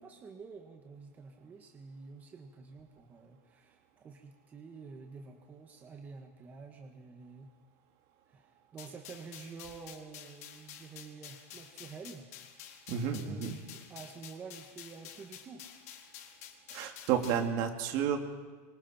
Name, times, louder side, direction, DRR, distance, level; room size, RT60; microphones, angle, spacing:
voice 1, 0.0-7.5 8.3-12.2 12.9-15.7, right 5 dB, 20° right, 2 dB, 1.8 m, -49 dB
sound 1, 8.8-17.5, left 10 dB, 70° left, 4.1 m, -50 dB
voice 2, 12.9-13.5 16.7-18.2, right 8 dB, 45° right, 4 dB, 2.7 m, -31 dB
28.5 x 24.5 x 4.5 m, 1.4 s
supercardioid pair, 155°, 9 cm